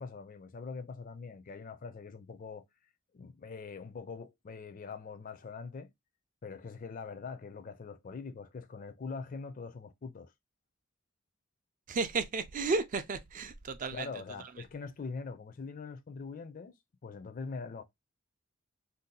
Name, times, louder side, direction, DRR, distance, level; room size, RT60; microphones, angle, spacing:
voice 1, 0.0-2.6 3.1-5.9 6.4-10.3 13.9-16.7 17.0-17.8, left 4 dB, 40° left, 0.4 m, -43 dB
voice 2, 11.9-14.1 14.4-14.5, right 3 dB, 40° right, 0.4 m, -33 dB
2.7 x 2.3 x 3.8 m
head